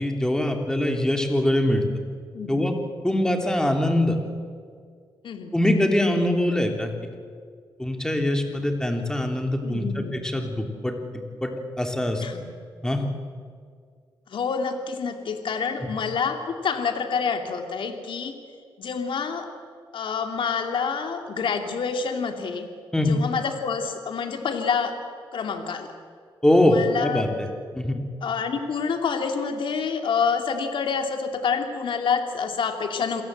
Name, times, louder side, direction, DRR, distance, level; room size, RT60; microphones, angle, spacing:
voice 1, 0.0-1.8 2.5-2.7 3.0-4.2 5.5-6.9 7.8-10.9 11.4-11.5 11.8-12.2 12.8-13.0 15.8-15.9 22.9-23.2 26.4-27.3 27.7-28.1, left 1 dB, 5° left, 4 dB, 3.3 m, -23 dB
voice 2, 2.3-2.7 5.2-5.6 9.6-10.3 12.2-12.6 14.3-18.3 18.8-19.5 19.9-22.7 23.0-24.9 25.3-25.9 26.7-27.3 28.2-33.2, left 6 dB, 65° left, 5 dB, 2.6 m, -27 dB
27.5 x 17.5 x 7.9 m, 2.1 s
cardioid pair, 85°, 9 cm